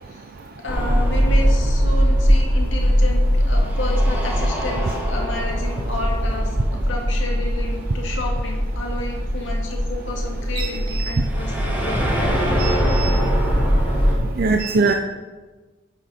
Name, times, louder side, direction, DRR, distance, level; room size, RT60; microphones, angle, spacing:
voice 1, 0.6-12.0 12.6-12.7, left 2 dB, 65° left, 0 dB, 2.3 m, -31 dB
sound 1, 0.7-14.1, equal, 10° right, 2.0 m, -20 dB
voice 2, 10.6-11.2 12.6-13.2 14.4-14.9, right 4 dB, 50° right, 4 dB, 0.6 m, -23 dB
11.5 x 8.3 x 4.3 m, 1.3 s
head